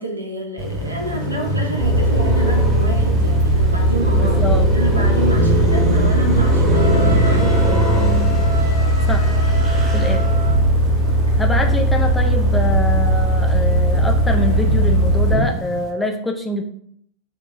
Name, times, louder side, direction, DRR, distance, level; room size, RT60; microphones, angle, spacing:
voice 1, 0.0-4.4 4.7-7.9, right 1 dB, 80° right, 2 dB, 0.7 m, -28 dB
Car passing by, 0.6-13.0 13.4-15.9, equal, 25° right, 1.4 m, -24 dB
sound 1, 1.8-15.4, right 1 dB, 45° right, 1.8 m, -17 dB
voice 2, 4.1-4.7 9.1-9.3 9.9-10.4 11.4-16.6, left 1 dB, 10° left, 4 dB, 0.6 m, -25 dB
Wind instrument woodwind instrument, 6.7-10.6, left 3 dB, 85° left, 0.7 m, -31 dB
6.1 x 2.9 x 2.6 m, 0.66 s
figure-of-eight pair, 90°, 0 cm